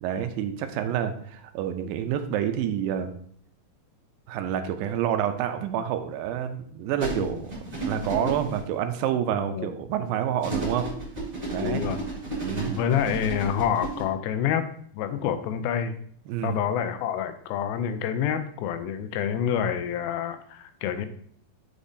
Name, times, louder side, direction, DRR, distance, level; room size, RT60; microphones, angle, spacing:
voice 1, 0.0-3.1 4.3-10.9 11.5-11.8 12.4-12.8 16.3-16.6, right 9 dB, 80° right, 8 dB, 2.3 m, -28 dB
sound 1, 7.0-8.6 10.4-14.0, right 2 dB, 20° right, 1.6 m, -32 dB
voice 2, 9.4-9.7 11.6-12.0 12.7-14.7 14.9-16.0 16.4-21.1, left 8 dB, 90° left, 9 dB, 2.5 m, -27 dB
8.4 x 5.0 x 2.7 m, 0.62 s
omnidirectional pair, 4.2 m